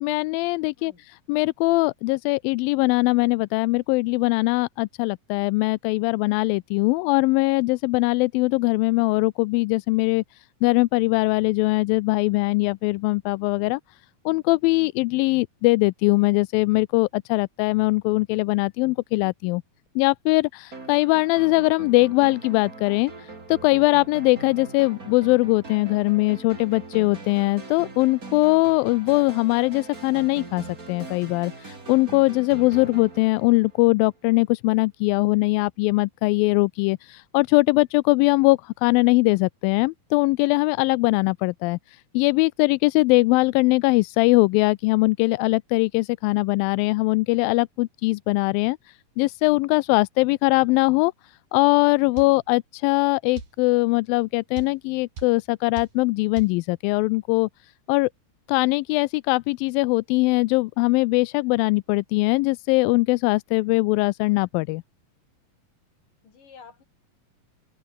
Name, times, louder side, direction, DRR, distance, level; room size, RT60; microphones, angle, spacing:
voice 1, 0.0-13.8 14.3-19.6 20.0-51.1 51.5-57.5 57.9-58.1 58.5-64.8, left 23 dB, 90° left, 2.3 m, -21 dB
sound 1, 20.7-34.3, right 3 dB, 25° right, 3.8 m, -41 dB
voice 2, 32.5-32.9 52.1-52.4 66.2-66.8, left 6 dB, 65° left, 5.8 m, -50 dB
sound 2, 52.2-52.4 53.4-53.6 54.6-54.8 55.2-55.4 55.8-56.0 56.4-56.6, right 5 dB, 70° right, 6.2 m, -37 dB
open air
omnidirectional pair, 4.0 m